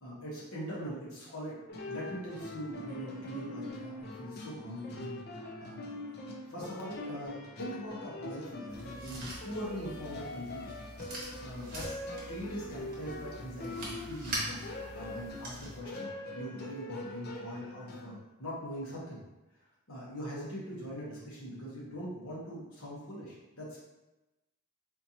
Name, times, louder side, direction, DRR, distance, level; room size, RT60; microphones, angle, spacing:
voice 1, 0.0-1.6 1.9-5.2 5.6-6.2 6.5-10.7 11.4-12.0 12.3-19.2 19.9-23.8, equal, 70° left, -6 dB, 1.2 m, -42 dB
sound 1, 1.7-18.2, left 1 dB, 45° left, 0.5 m, -43 dB
sound 2, 8.7-15.8, right 1 dB, 40° right, 1.1 m, -43 dB
4.3 x 2.8 x 2.8 m, 1.0 s
head